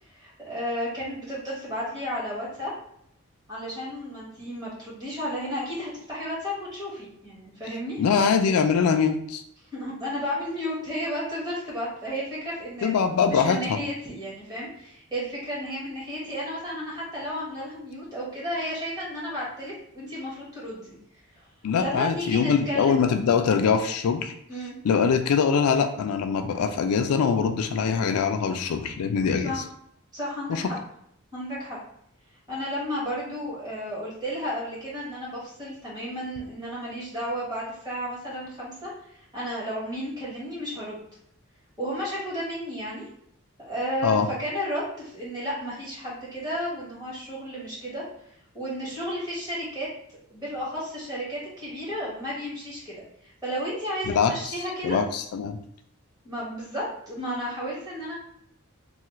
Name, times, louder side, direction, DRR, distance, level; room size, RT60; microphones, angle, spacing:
voice 1, 0.1-2.7 3.5-8.0 9.7-13.0 13.2-20.9 21.3-21.4 21.7-23.0 24.5-24.8 29.4-29.6 30.1-30.8 31.3-31.8 32.5-41.0 41.8-43.0 43.6-48.0 48.5-49.9 50.3-55.0 56.2-58.1, equal, 20° right, -7 dB, 1.4 m, -33 dB
voice 2, 8.0-9.4 12.8-13.8 21.6-24.3 24.8-29.5 30.5-30.7 44.0-44.3 54.1-54.6 54.8-55.6, left 6 dB, 85° left, 7 dB, 0.3 m, -23 dB
3.2 x 2.3 x 2.9 m, 0.71 s
head